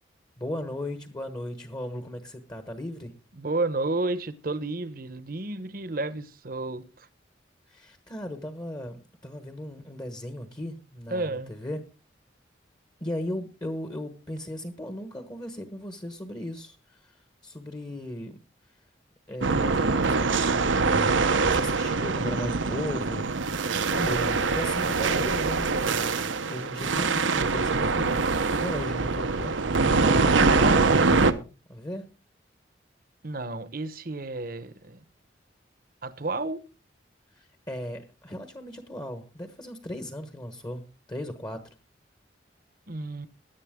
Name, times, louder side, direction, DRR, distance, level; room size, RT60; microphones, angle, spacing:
voice 1, 0.4-3.1 7.7-11.8 13.0-17.2 17.4-18.4 19.3-20.8 21.1-23.6 23.9-26.2 26.5-29.5 30.0-32.0 37.3-40.8 41.1-41.6, left 1 dB, 20° left, 1.2 m, -36 dB
voice 2, 3.3-7.1 11.1-11.5 33.2-35.0 36.0-36.6 42.9-43.3, right 2 dB, 50° right, 1.0 m, -31 dB
sound 1, 19.4-31.3, right 4 dB, 85° right, 1.0 m, -24 dB
16.5 x 11.0 x 3.7 m
head